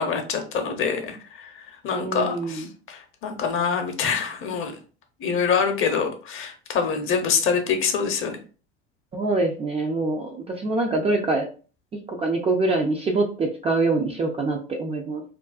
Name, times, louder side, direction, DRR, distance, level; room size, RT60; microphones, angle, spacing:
voice 1, 0.0-1.5 1.8-4.7 5.2-8.4, left 6 dB, 40° left, 5 dB, 0.7 m, -25 dB
voice 2, 1.9-2.7 9.1-11.5 12.1-15.2, right 2 dB, 20° right, 1 dB, 0.3 m, -24 dB
2.4 x 2.2 x 2.3 m, 0.36 s
hypercardioid pair, 75°, 34 cm